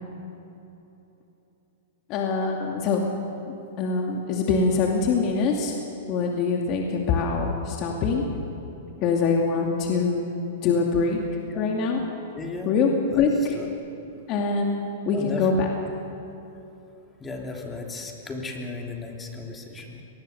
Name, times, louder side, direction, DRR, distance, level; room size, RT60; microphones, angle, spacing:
voice 1, 2.1-3.0 3.8-5.7 6.1-8.2 9.0-10.3 10.6-11.2 11.6-12.0 12.6-12.9 13.2-13.6 14.3-15.7, left 4 dB, 40° left, 0 dB, 2.5 m, -24 dB
voice 2, 12.3-12.7 13.1-13.2 13.5-13.7 15.1-15.5 17.2-20.0, left 3 dB, 15° left, 1 dB, 3.2 m, -35 dB
23.5 x 20.0 x 7.0 m, 3.0 s
hypercardioid pair, 140°, 0 cm